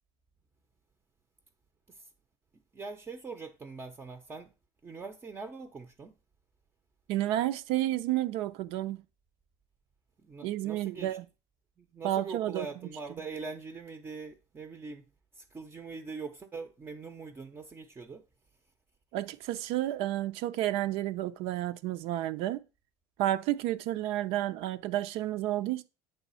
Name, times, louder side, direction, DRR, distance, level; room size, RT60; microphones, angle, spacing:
voice 1, 2.7-4.5 4.8-6.1 10.2-11.2 11.8-15.1 15.3-18.3, right 4 dB, 20° right, 0.7 m, -42 dB
voice 2, 7.1-9.0 10.4-11.2 12.0-12.7 19.1-22.6 23.2-25.8, right 14 dB, 60° right, 0.6 m, -31 dB
8.3 x 3.5 x 5.5 m
cardioid pair, 140°, 11 cm